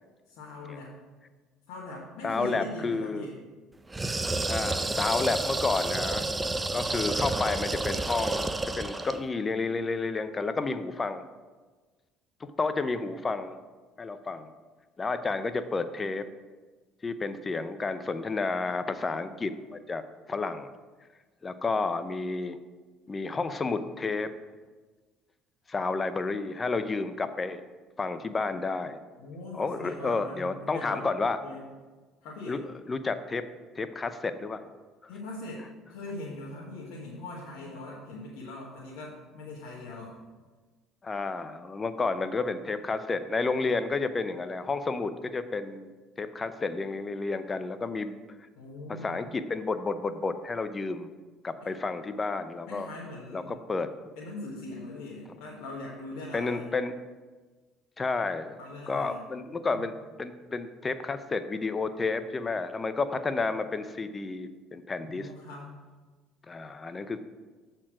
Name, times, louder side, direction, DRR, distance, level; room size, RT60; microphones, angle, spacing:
voice 1, 0.3-1.0 1.7-3.4 29.2-31.1 31.4-31.6 32.2-32.6 35.1-40.1 48.6-49.2 51.6-51.7 52.7-53.5 54.2-56.7 58.6-59.8 65.0-65.8, left 2 dB, 75° left, -5 dB, 1.4 m, -41 dB
voice 2, 2.2-3.3 4.5-6.3 6.7-11.2 12.4-13.6 14.0-14.5 15.0-16.3 17.0-20.0 20.3-20.7 21.4-22.6 23.1-24.3 25.7-27.6 28.0-29.0 29.5-31.4 32.5-32.6 32.9-33.4 33.7-34.6 41.0-45.9 46.2-48.1 48.9-51.1 51.4-52.9 53.3-53.9 56.3-56.9 58.0-58.6 58.9-65.3 66.5-67.2, left 3 dB, 30° left, 11 dB, 0.6 m, -31 dB
sound 1, 3.9-9.2, right 2 dB, 20° right, 0.5 m, -30 dB
7.4 x 4.5 x 6.1 m, 1.3 s
supercardioid pair, 75°, 0 cm